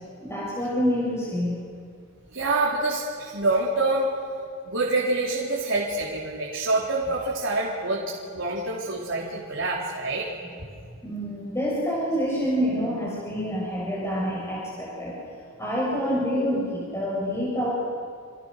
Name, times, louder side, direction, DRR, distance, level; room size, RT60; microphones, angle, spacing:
voice 1, 0.2-1.6 11.0-15.2 15.6-17.7, equal, 15° left, -5 dB, 6.8 m, -27 dB
voice 2, 2.3-4.1 4.6-8.0 8.3-10.3, right 2 dB, 60° right, -5 dB, 4.0 m, -26 dB
29.5 x 28.5 x 6.8 m, 2.2 s
head